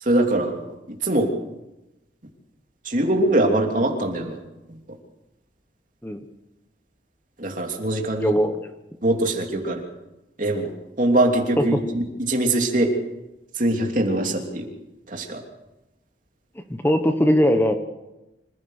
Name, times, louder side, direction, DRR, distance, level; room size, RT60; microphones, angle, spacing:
voice 1, 0.0-0.6 1.0-1.3 2.8-4.4 7.4-8.3 9.0-9.8 10.4-10.7 11.0-12.9 13.6-14.7 15.1-15.4, right 1 dB, 45° right, 2 dB, 3.1 m, -22 dB
voice 2, 8.2-8.6 11.6-11.7 16.7-17.7, equal, 10° left, 7 dB, 1.0 m, -19 dB
26.0 x 15.5 x 6.6 m, 0.97 s
head